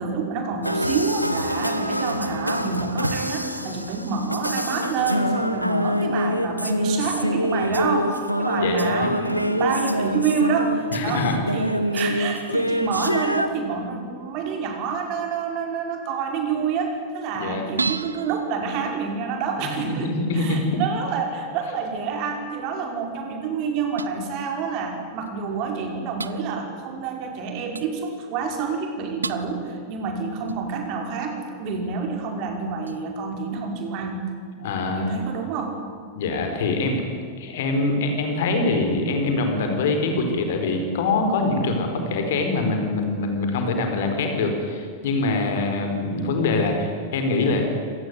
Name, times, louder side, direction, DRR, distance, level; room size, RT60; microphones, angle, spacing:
voice 1, 0.0-34.2 34.9-35.8, right 5 dB, 40° right, 3 dB, 5.1 m, -28 dB
sound 1, 0.6-13.5, equal, 90° left, 1.3 m, -25 dB
voice 2, 8.6-9.1 10.9-11.4 17.3-17.6 19.6-20.8 34.6-35.1 36.1-37.0 37.4-47.7, left 3 dB, 55° left, 5 dB, 4.9 m, -24 dB
sound 2, 17.8-19.5 24.0-24.2 25.3-25.4 26.2-26.4 27.7-27.9 29.2-29.5 30.5-31.1 32.9-33.2, right 4 dB, 75° right, 0.9 m, -32 dB
26.0 x 19.5 x 9.6 m, 2.1 s
figure-of-eight pair, 90°, 0 cm